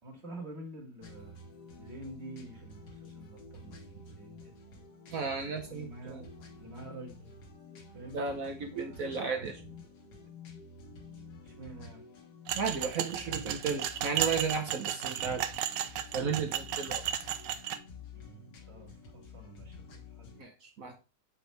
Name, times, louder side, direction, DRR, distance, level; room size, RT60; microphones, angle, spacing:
voice 1, 0.0-1.3 1.8-4.5 5.6-6.3 6.6-7.4 7.9-9.5 11.4-12.0 18.1-19.9 20.2-20.4, right 1 dB, 35° right, 0 dB, 2.4 m, -48 dB
sound 1, 1.0-20.4, left 3 dB, 60° left, 1.8 m, -50 dB
voice 2, 5.1-6.3 8.1-9.6 12.5-15.4 16.1-17.0 20.4-21.0, right 5 dB, 55° right, 4 dB, 1.1 m, -34 dB
sound 2, 12.5-17.8, right 10 dB, 75° right, 1.2 m, -34 dB
8.1 x 4.7 x 3.3 m, 0.32 s
omnidirectional pair, 2.0 m